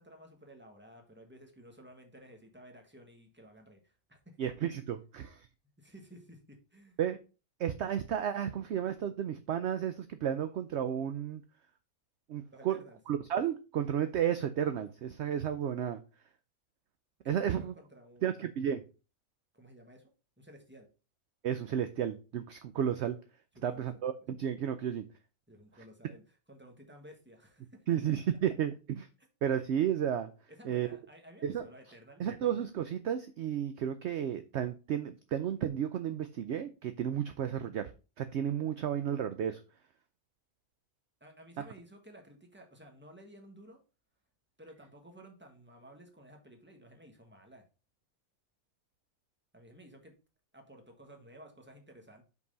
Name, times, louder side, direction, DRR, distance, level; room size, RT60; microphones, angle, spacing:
voice 1, 0.0-4.5 5.8-7.0 12.5-13.0 17.2-18.4 19.5-20.1 20.4-20.9 23.5-24.0 25.5-27.8 29.2-29.3 30.6-32.5 41.2-43.8 44.6-47.6 49.5-50.1 50.5-52.2, right 1 dB, 10° right, 3 dB, 1.4 m, -54 dB
voice 2, 4.4-5.4 7.0-7.2 7.6-11.4 12.3-12.8 13.1-16.0 17.3-17.7 18.2-18.8 21.4-23.2 23.6-25.0 27.9-29.1 29.4-30.3 30.6-30.9 31.4-31.7 32.2-37.9 38.2-39.6, right 9 dB, 65° right, 10 dB, 0.7 m, -32 dB
5.5 x 4.7 x 5.5 m, 0.33 s
omnidirectional pair, 1.5 m